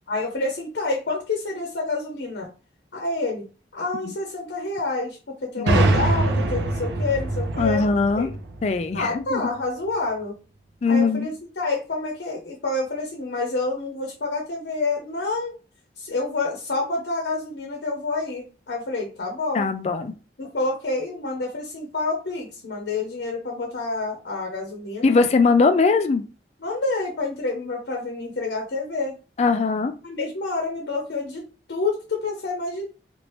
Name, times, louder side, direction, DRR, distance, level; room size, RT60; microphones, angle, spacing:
voice 1, 0.1-2.5 2.9-3.5 3.7-8.3 8.9-10.3 10.9-15.5 16.0-19.7 20.4-25.2 26.6-29.1 30.0-31.4 31.7-32.9, left 3 dB, 75° left, 1 dB, 0.7 m, -28 dB
sound 1, 5.7-9.3, right 2 dB, 75° right, 0.5 m, -24 dB
voice 2, 7.6-8.3 8.6-9.4 10.8-11.3 19.5-20.1 25.0-26.2 29.4-29.9, left 4 dB, 35° left, 9 dB, 0.3 m, -20 dB
3.1 x 2.5 x 3.0 m, 0.35 s
head